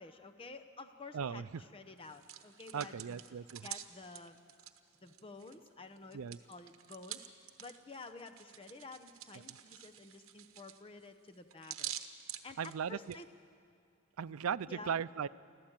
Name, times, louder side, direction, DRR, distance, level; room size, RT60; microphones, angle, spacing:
voice 1, 0.0-3.2 3.6-4.4 5.0-6.2 6.5-7.2 7.6-11.9 12.4-13.3 14.7-15.0, left 3 dB, 25° left, 8 dB, 0.8 m, -51 dB
voice 2, 1.1-1.5 2.7-3.7 6.1-6.4 12.6-13.2 14.2-15.3, right 7 dB, 85° right, 17 dB, 0.5 m, -37 dB
Hands, 2.0-5.7 6.0-13.2, right 11 dB, 70° right, 1.1 m, -48 dB
24.5 x 15.0 x 8.9 m, 2.3 s
head